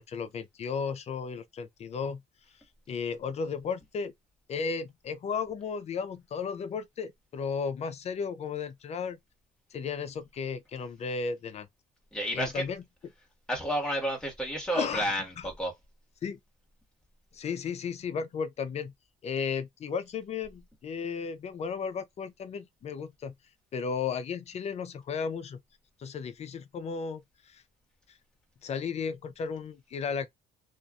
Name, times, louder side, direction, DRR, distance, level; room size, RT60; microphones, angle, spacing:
voice 1, 0.0-2.2 2.9-4.1 4.5-9.2 9.7-11.7 12.3-12.8 14.7-15.5 16.2-16.4 17.3-18.9 19.2-23.3 23.7-25.6 26.0-27.6 28.6-30.3, left 6 dB, 40° left, 0.5 m, -34 dB
voice 2, 12.1-12.6 13.5-15.7, equal, 5° left, 1.5 m, -31 dB
2.7 x 2.5 x 2.3 m
cardioid pair, 110°, 17 cm